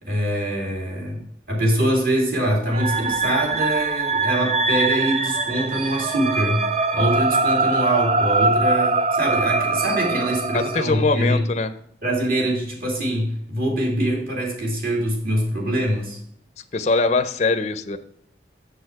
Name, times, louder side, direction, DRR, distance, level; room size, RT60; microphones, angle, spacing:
voice 1, 0.0-1.2 1.5-11.5 12.0-16.2, right 1 dB, 50° right, -2 dB, 2.6 m, -24 dB
sound 1, 2.7-10.8, right 3 dB, 35° right, 0.4 m, -22 dB
voice 2, 10.5-11.7 16.7-18.0, left 3 dB, 40° left, 10 dB, 0.4 m, -22 dB
6.9 x 6.5 x 4.6 m, 0.72 s
head